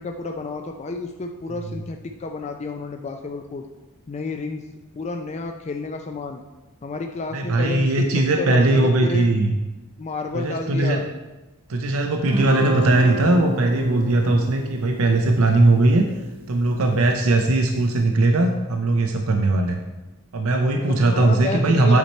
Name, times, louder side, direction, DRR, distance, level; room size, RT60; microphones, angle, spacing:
voice 1, 0.0-3.7 4.1-4.7 4.9-6.4 6.8-9.3 10.0-11.1 20.9-22.0, left 3 dB, 30° left, 4 dB, 0.4 m, -30 dB
voice 2, 7.3-9.6 10.3-11.0 11.7-16.0 16.5-19.8 20.3-22.0, right 2 dB, 70° right, 4 dB, 0.6 m, -19 dB
Guitar, 12.3-16.9, right 1 dB, 25° right, 0.9 m, -29 dB
8.2 x 4.5 x 4.3 m, 1.1 s
head